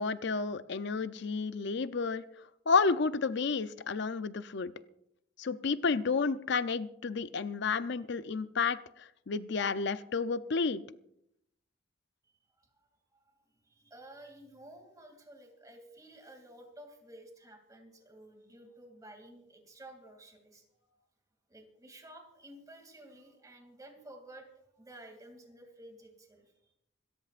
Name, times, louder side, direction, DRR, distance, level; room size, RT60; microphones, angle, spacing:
voice 1, 0.0-2.2 2.7-4.7 5.4-8.8 9.3-10.8, left 4 dB, 65° left, 13 dB, 0.6 m, -31 dB
voice 2, 12.6-13.2 13.7-20.6 21.5-24.5 24.7-26.7, right 1 dB, 20° right, 3 dB, 2.7 m, -53 dB
27.0 x 13.5 x 2.5 m, 0.78 s
head